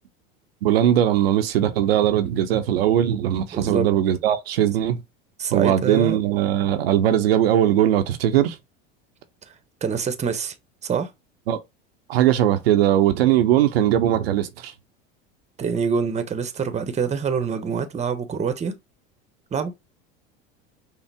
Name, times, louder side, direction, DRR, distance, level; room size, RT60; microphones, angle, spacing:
voice 1, 0.6-5.0 5.5-8.6 11.5-11.6 12.1-14.7, right 11 dB, 85° right, 0.7 m, -20 dB
voice 2, 3.5-3.9 5.4-6.2 9.8-10.5 10.8-11.1 15.6-18.8 19.5-19.7, right 6 dB, 25° right, 0.8 m, -25 dB
5.6 x 2.1 x 3.3 m
hypercardioid pair, 90°, 29 cm